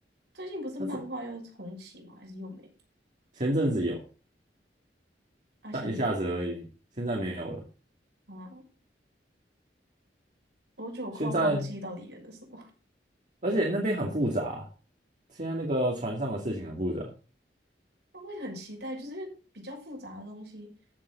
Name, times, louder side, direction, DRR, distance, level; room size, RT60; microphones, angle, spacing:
voice 1, 0.3-2.7 5.6-6.2 8.3-8.6 10.8-12.7 18.1-20.7, equal, 75° right, 0 dB, 6.3 m, -40 dB
voice 2, 3.3-4.0 5.7-6.7 7.0-7.6 11.2-11.7 13.4-14.7 15.4-17.1, right 1 dB, 45° right, -1 dB, 2.5 m, -28 dB
15.0 x 7.5 x 4.0 m, 0.35 s
head